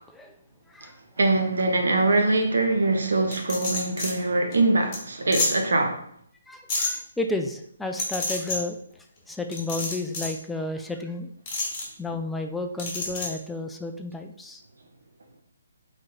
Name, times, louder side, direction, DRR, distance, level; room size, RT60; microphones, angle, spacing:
voice 1, 1.2-6.0, right 2 dB, 60° right, 0.8 m, -23 dB
sound 1, 3.3-4.1 4.5-4.6 4.9-5.0 5.3-5.5 6.7-6.9 8.0-8.6 9.5-10.4 11.5-11.8 12.8-13.3, left 3 dB, 20° left, 1.5 m, -28 dB
voice 2, 6.5-8.8 9.3-11.3 12.0-14.6, left 2 dB, 5° left, 0.3 m, -32 dB
4.6 x 4.1 x 2.3 m
figure-of-eight pair, 135°, 0 cm